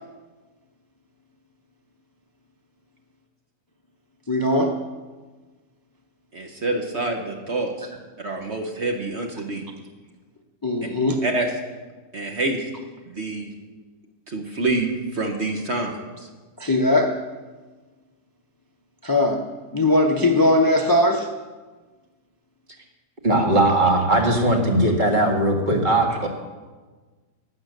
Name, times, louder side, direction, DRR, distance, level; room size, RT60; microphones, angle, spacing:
voice 1, 4.3-4.8 10.6-11.2 16.6-17.2 19.0-19.4 19.7-21.3, left 1 dB, 25° left, 3 dB, 0.5 m, -19 dB
voice 2, 6.3-7.9 8.2-9.6 11.2-11.5 12.1-12.7 13.1-13.5 14.3-16.3, right 2 dB, 45° right, 3 dB, 1.3 m, -27 dB
voice 3, 23.2-26.3, right 1 dB, 30° right, 1 dB, 1.8 m, -19 dB
12.0 x 8.8 x 6.6 m, 1.3 s
omnidirectional pair, 1.7 m